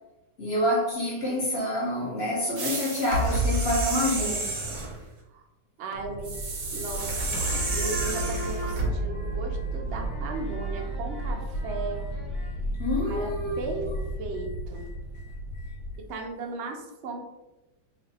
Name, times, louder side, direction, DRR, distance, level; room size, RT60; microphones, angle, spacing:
voice 1, 0.4-4.5 12.8-13.9, left 1 dB, 50° left, -5 dB, 0.8 m, -27 dB
sound 1, 2.6-5.0 6.2-8.9, right 2 dB, 55° right, 0.8 m, -29 dB
voice 2, 5.8-7.4 7.7-12.0 13.0-13.9 14.2-14.9 16.0-17.2, right 2 dB, 85° right, 2 dB, 0.6 m, -36 dB
sound 2, 5.9-16.0, right 1 dB, 70° left, 1.4 m, -34 dB
sound 3, 7.3-14.6, equal, ahead, 0.7 m, -39 dB
3.1 x 2.5 x 4.0 m, 1.0 s
omnidirectional pair, 1.9 m